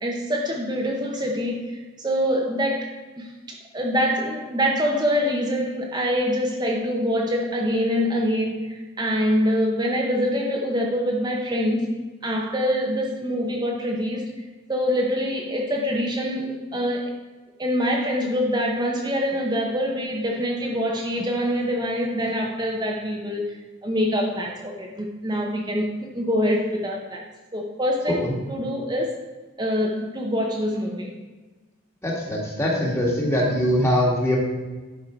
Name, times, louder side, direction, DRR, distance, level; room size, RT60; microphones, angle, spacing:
voice 1, 0.0-11.9 12.2-14.3 14.7-17.1 17.6-25.9 26.1-27.2 27.5-29.2 29.6-31.1, equal, 20° right, 0 dB, 0.9 m, -25 dB
voice 2, 32.0-34.4, equal, 15° left, -3 dB, 1.9 m, -22 dB
10.5 x 5.7 x 4.5 m, 1.3 s
head